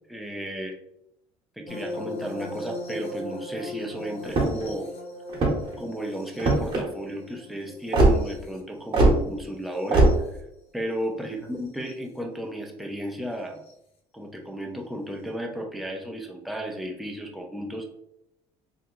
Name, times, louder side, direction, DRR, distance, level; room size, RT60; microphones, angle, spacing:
voice 1, 0.1-0.8 1.6-4.9 5.8-10.4 10.7-13.6 14.1-17.8, equal, ahead, 1 dB, 0.6 m, -34 dB
sound 1, 1.7-10.4 11.7-11.9 13.6-13.7, left 1 dB, 50° left, 0.8 m, -39 dB
sound 2, 4.3-4.7 5.3-5.8 6.4-6.8 7.9-8.2 8.9-9.2 9.9-10.1, right 2 dB, 40° right, 1.1 m, -19 dB
2.8 x 2.2 x 3.8 m, 0.80 s
cardioid pair, 115°, 13 cm